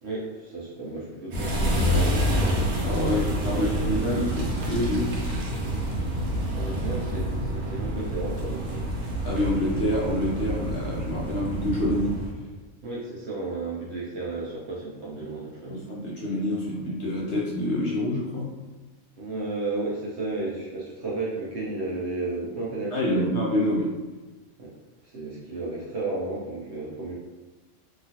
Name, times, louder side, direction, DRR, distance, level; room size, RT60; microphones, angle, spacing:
voice 1, 0.0-2.8 3.2-3.9 6.3-8.9 12.8-15.8 19.2-23.3 24.6-24.7 25.0-27.1, right 3 dB, 65° right, -5 dB, 0.7 m, -33 dB
sound 1, 1.3-12.3, equal, 80° right, 1.1 m, -28 dB
voice 2, 2.8-5.1 9.2-12.2 15.7-18.5 22.9-23.9, left 1 dB, 65° left, -5 dB, 0.7 m, -27 dB
2.9 x 2.3 x 2.7 m, 1.2 s
omnidirectional pair, 1.5 m